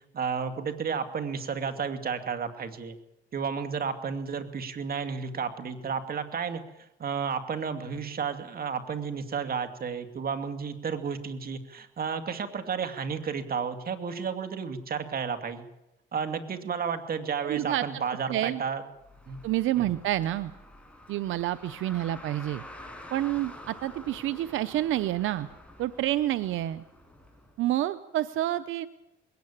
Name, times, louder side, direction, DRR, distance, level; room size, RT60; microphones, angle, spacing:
voice 1, 0.1-3.0 3.3-6.6 7.0-15.7 16.1-18.8 19.3-19.4 19.8-19.9, right 6 dB, 50° right, 8 dB, 2.5 m, -32 dB
voice 2, 17.4-17.8 18.3-18.6 19.4-20.5 21.1-22.6 23.1-25.5 25.8-26.8 27.6-28.9, right 14 dB, 85° right, 13 dB, 0.7 m, -28 dB
Car, 19.0-27.5, left 1 dB, 5° left, 6.2 m, -48 dB
21.0 x 17.5 x 8.7 m, 0.90 s
cardioid pair, 90°, 20 cm